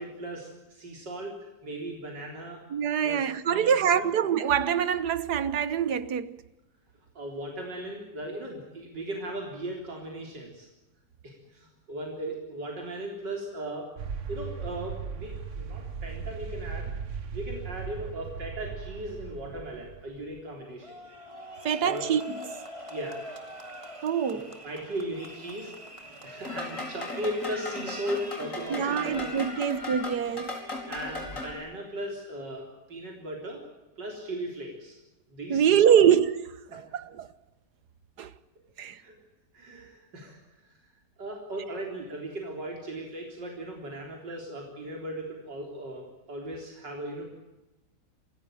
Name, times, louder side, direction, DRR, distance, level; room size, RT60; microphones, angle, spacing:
voice 1, 0.0-1.4 1.6-2.6 3.0-4.1 7.1-10.7 11.2-13.9 14.3-16.9 17.3-21.0 21.8-22.0 22.9-23.2 24.6-25.7 26.1-29.3 30.9-33.6 34.0-35.0 35.3-36.0 39.0-39.2 39.5-40.7 41.2-47.4, right 1 dB, 90° right, 4.6 m, -37 dB
voice 2, 2.7-6.4 21.6-22.6 24.0-24.5 28.7-30.6 35.5-37.3 38.2-38.3 38.8-39.0, right 8 dB, 70° right, 1.7 m, -25 dB
sound 1, 14.0-20.4, right 6 dB, 50° right, 1.4 m, -38 dB
sound 2, 20.8-29.7, equal, 20° right, 2.4 m, -44 dB
sound 3, 26.4-31.5, left 2 dB, 45° left, 5.4 m, -37 dB
27.0 x 16.5 x 9.0 m
omnidirectional pair, 1.8 m